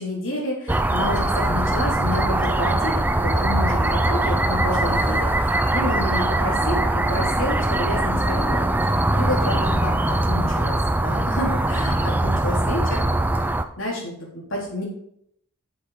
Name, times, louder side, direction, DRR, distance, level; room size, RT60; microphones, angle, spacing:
voice 1, 0.0-13.0 13.8-14.8, left 1 dB, 60° left, -3 dB, 3.8 m, -29 dB
sound 1, 0.7-13.6, right 1 dB, 10° right, 0.4 m, -21 dB
7.7 x 7.0 x 5.2 m, 0.70 s
head